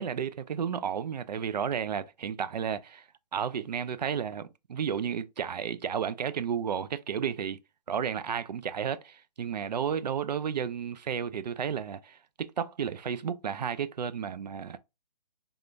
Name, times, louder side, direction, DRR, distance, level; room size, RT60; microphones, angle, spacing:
voice 1, 0.0-3.0 3.3-7.6 7.9-14.8, right 7 dB, 85° right, 0.5 m, -32 dB
3.5 x 2.3 x 2.5 m
hypercardioid pair, 175°, 21 cm